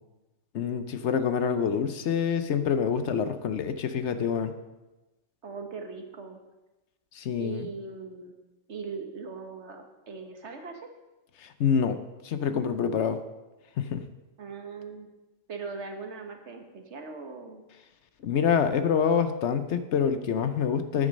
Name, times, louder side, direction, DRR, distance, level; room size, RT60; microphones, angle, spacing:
voice 1, 0.5-4.5 7.1-7.7 11.4-12.0 12.2-13.2 13.8-14.0 18.2-21.1, left 7 dB, 70° left, 10 dB, 1.0 m, -26 dB
voice 2, 5.4-6.4 7.4-8.3 8.7-10.9 14.4-15.1 15.5-17.6, right 4 dB, 65° right, 5 dB, 1.5 m, -40 dB
9.4 x 9.2 x 5.3 m, 1.1 s
omnidirectional pair, 1.3 m